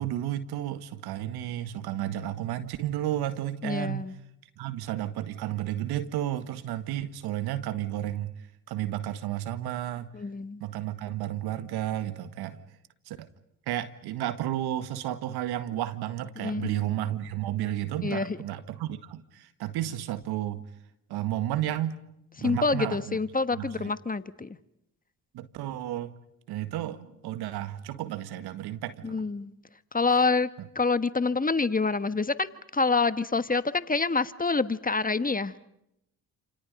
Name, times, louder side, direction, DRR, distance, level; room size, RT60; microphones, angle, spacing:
voice 1, 0.0-4.1 4.6-8.3 8.7-10.1 10.6-12.6 13.1-13.3 13.7-20.6 21.1-22.0 22.4-23.2 23.5-23.9 25.3-26.1 26.5-29.2, right 12 dB, 75° right, 11 dB, 1.8 m, -32 dB
voice 2, 3.6-4.1 10.1-10.6 16.4-16.9 18.0-18.4 22.4-24.6 29.0-29.5 29.9-30.5 30.7-35.6, left 4 dB, 20° left, 13 dB, 1.3 m, -27 dB
28.5 x 28.0 x 5.4 m, 0.80 s
hypercardioid pair, 50°, 39 cm